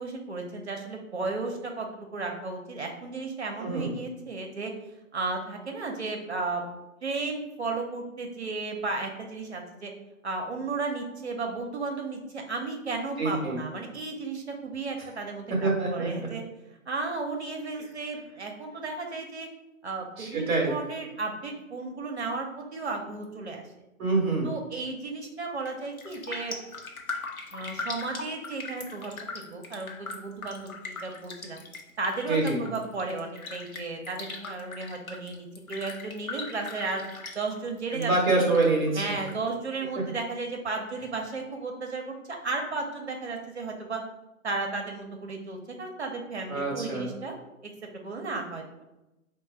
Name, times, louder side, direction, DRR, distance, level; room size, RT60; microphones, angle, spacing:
voice 1, 0.0-1.9 2.1-4.7 5.1-6.6 7.0-9.9 10.2-16.4 16.9-19.5 19.8-23.6 24.4-26.6 27.5-31.6 32.0-37.0 37.3-38.1 39.0-42.1 42.4-44.0 44.4-47.3 47.6-48.6, right 3 dB, 50° right, 2 dB, 0.6 m, -34 dB
voice 2, 3.6-3.9 13.2-13.6 15.5-16.3 20.2-20.7 24.0-24.5 32.3-32.6 37.9-39.2 46.5-47.1, right 3 dB, 10° right, -3 dB, 0.6 m, -26 dB
Raindrop, 25.5-25.7 26.0-38.1 38.3-39.3 39.7-39.8, left 4 dB, 75° left, 0.8 m, -39 dB
3.8 x 2.2 x 4.2 m, 0.97 s
figure-of-eight pair, 135°, 42 cm